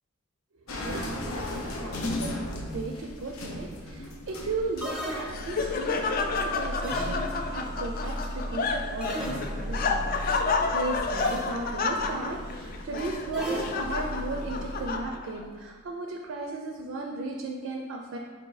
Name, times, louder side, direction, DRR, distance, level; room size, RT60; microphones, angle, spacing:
sound 1, 0.7-15.0, left 1 dB, 85° left, 0.7 m, -37 dB
voice 1, 0.8-2.4 2.7-10.1 10.4-18.2, right 3 dB, 65° right, 2 dB, 0.4 m, -35 dB
sound 2, 4.8-5.8 6.8-7.6 9.0-9.9 11.2-11.7 13.3-14.2, equal, 5° right, 0.6 m, -36 dB
Laughter, 4.9-15.4, left 4 dB, 45° left, 0.3 m, -30 dB
4.4 x 2.7 x 4.6 m, 1.5 s
head